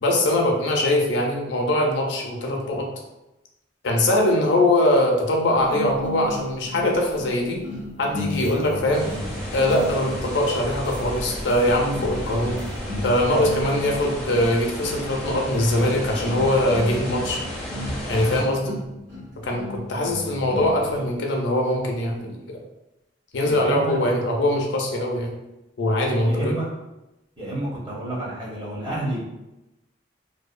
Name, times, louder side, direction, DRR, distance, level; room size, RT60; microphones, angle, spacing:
voice 1, 0.0-2.8 3.8-7.6 8.0-9.1 9.5-12.6 13.0-17.4 18.1-18.8 19.4-22.6 23.3-25.3 25.8-26.6, left 1 dB, 70° left, 0 dB, 0.4 m, -22 dB
sound 1, 5.7-21.1, left 1 dB, 80° right, 1.3 m, -35 dB
sound 2, 8.9-18.4, equal, 5° left, 0.5 m, -33 dB
voice 2, 23.4-24.1 26.2-26.7 27.4-29.2, right 1 dB, 25° right, -7 dB, 0.8 m, -30 dB
2.6 x 2.1 x 2.4 m, 0.97 s
head